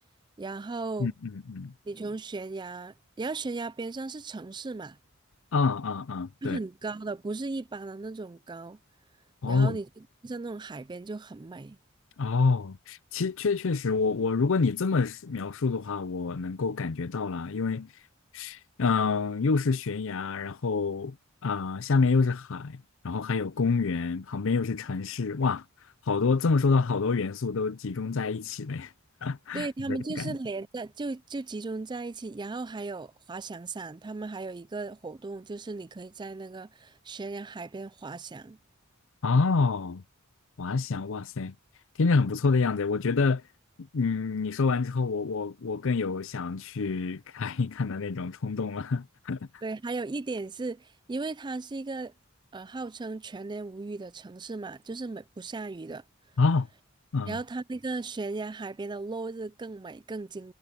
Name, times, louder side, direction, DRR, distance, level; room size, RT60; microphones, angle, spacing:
voice 1, 0.4-1.1 1.8-5.0 6.4-8.8 9.4-11.8 29.5-38.6 49.6-52.1 52.5-56.0 57.3-60.5, right 3 dB, 20° right, 0.4 m, -36 dB
voice 2, 1.0-1.7 5.5-6.6 9.4-9.8 12.2-17.9 18.3-21.2 21.4-25.6 26.1-28.9 29.2-30.4 39.2-40.0 40.6-41.5 42.0-43.4 43.9-49.4 56.4-56.7 57.1-57.4, left 4 dB, 65° left, 0.6 m, -27 dB
head